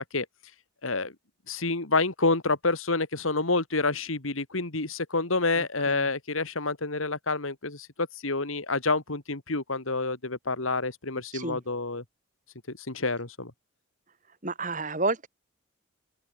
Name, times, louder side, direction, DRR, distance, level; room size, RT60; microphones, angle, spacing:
voice 1, 0.8-1.1 1.5-12.0 12.7-13.5, left 3 dB, 75° left, 2.6 m, -28 dB
voice 2, 5.6-6.0 11.3-11.6 14.4-15.3, right 3 dB, 35° right, 3.3 m, -31 dB
open air
head